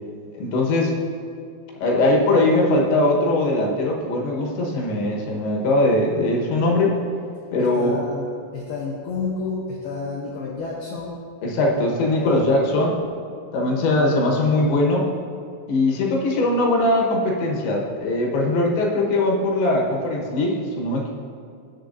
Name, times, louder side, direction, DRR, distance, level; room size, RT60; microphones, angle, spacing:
voice 1, 0.3-1.0 1.8-7.0 7.5-8.0 11.4-13.0 13.5-15.1 15.7-21.1, left 2 dB, 70° left, -2 dB, 3.4 m, -20 dB
voice 2, 7.6-8.3 8.5-11.3 11.7-11.9 12.1-12.4, left 4 dB, 90° left, -4 dB, 2.2 m, -30 dB
18.0 x 7.1 x 2.7 m, 2.4 s
omnidirectional pair, 5.9 m